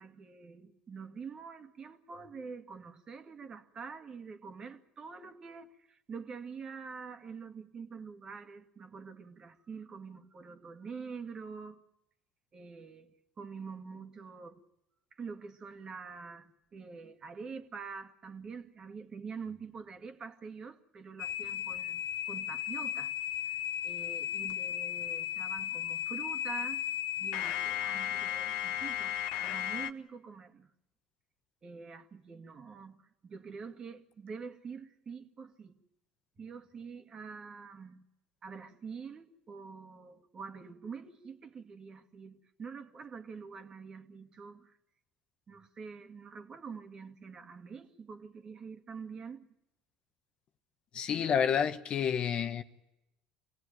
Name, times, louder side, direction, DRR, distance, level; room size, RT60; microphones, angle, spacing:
voice 1, 0.0-11.8 12.5-14.6 15.1-23.1 23.5-26.8 27.2-30.7 31.6-35.8 36.4-38.0 38.4-44.8 45.5-49.5, right 5 dB, 35° right, 2.2 m, -46 dB
sound 1, 21.2-29.9, left 11 dB, 70° left, 1.1 m, -35 dB
voice 2, 50.9-52.6, left 8 dB, 45° left, 1.2 m, -29 dB
26.0 x 17.5 x 9.2 m
hypercardioid pair, 80°, 2 cm